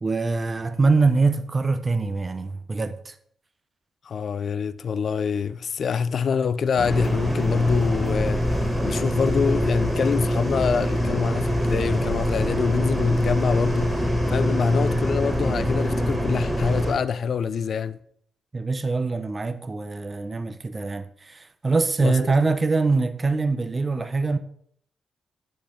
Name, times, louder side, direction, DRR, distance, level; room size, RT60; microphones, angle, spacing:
voice 1, 0.0-3.1 18.5-24.4, right 3 dB, 30° right, 0.5 m, -23 dB
voice 2, 4.1-18.0 22.0-22.3, left 6 dB, 60° left, 0.4 m, -26 dB
sound 1, 6.8-16.9, equal, 5° right, 2.2 m, -23 dB
10.0 x 4.3 x 3.8 m
cardioid pair, 80°, 0 cm